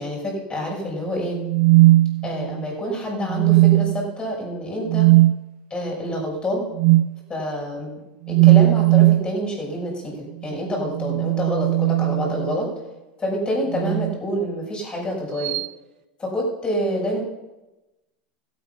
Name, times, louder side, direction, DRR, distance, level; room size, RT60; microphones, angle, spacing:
voice 1, 0.0-1.4 2.2-5.1 5.7-6.7 7.3-8.0 8.3-12.7 13.2-15.6 16.2-17.2, equal, 20° left, -2 dB, 6.1 m, -27 dB
sound 1, 1.4-2.7 3.3-4.1 4.9-5.4 6.8-7.1 8.3-9.3 10.8-12.6 13.7-14.2 15.4-15.7, right 18 dB, 60° right, 0.4 m, -17 dB
15.5 x 8.6 x 5.7 m, 1.0 s
supercardioid pair, 115°, 5 cm